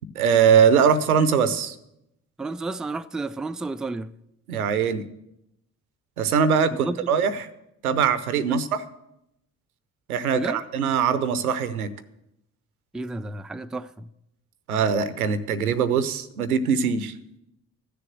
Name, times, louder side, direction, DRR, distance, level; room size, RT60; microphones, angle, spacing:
voice 1, 0.2-1.8 4.5-5.0 6.2-7.4 7.8-8.8 10.1-11.9 14.7-17.1, right 7 dB, 90° right, 0.7 m, -21 dB
voice 2, 2.4-4.1 6.7-7.2 8.5-8.6 10.3-10.6 12.9-14.1, right 3 dB, ahead, 0.3 m, -32 dB
14.0 x 6.8 x 7.8 m
figure-of-eight pair, 45°, 42 cm